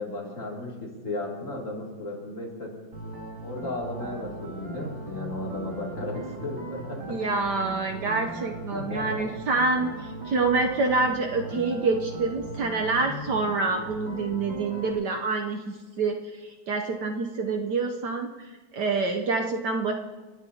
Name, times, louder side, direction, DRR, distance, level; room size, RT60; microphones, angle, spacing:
voice 1, 0.0-2.9 3.4-7.1 8.7-9.0 14.7-14.8, left 2 dB, 40° left, -3 dB, 3.0 m, -35 dB
sound 1, 2.9-14.9, right 2 dB, 85° right, 2.8 m, -38 dB
voice 2, 7.1-9.9 10.3-16.2 16.4-18.3 18.7-19.9, right 3 dB, 65° right, 3 dB, 1.3 m, -26 dB
29.0 x 11.0 x 2.8 m, 1.3 s
omnidirectional pair, 2.2 m